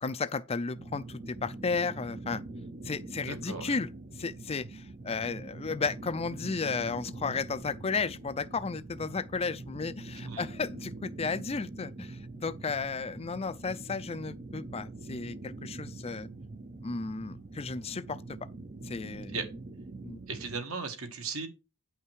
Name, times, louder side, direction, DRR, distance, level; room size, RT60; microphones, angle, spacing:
voice 1, 0.0-2.4 2.8-16.3 16.8-18.2 18.8-19.3 20.0-20.2, left 4 dB, 25° left, 0.5 m, -34 dB
sound 1, 0.7-20.6, right 2 dB, 35° right, 0.7 m, -44 dB
voice 2, 3.3-3.7 10.2-10.4 19.3-19.5 20.3-21.5, right 4 dB, 70° right, 2.1 m, -36 dB
9.4 x 5.7 x 4.7 m
head